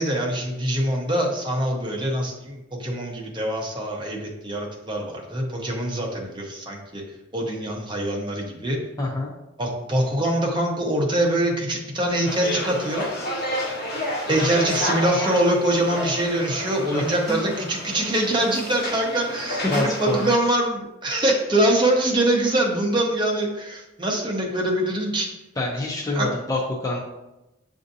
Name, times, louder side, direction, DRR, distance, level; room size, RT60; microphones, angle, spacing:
voice 1, 0.0-7.0 7.3-8.8 9.6-13.0 14.3-25.3 26.1-26.3, right 1 dB, 25° right, -1 dB, 0.8 m, -24 dB
voice 2, 9.0-9.3 16.9-17.4 19.6-20.2 25.6-27.0, left 2 dB, 20° left, -3 dB, 0.5 m, -26 dB
sound 1, 12.2-20.3, left 1 dB, 55° left, 1.0 m, -30 dB
7.1 x 2.6 x 2.6 m, 0.96 s
head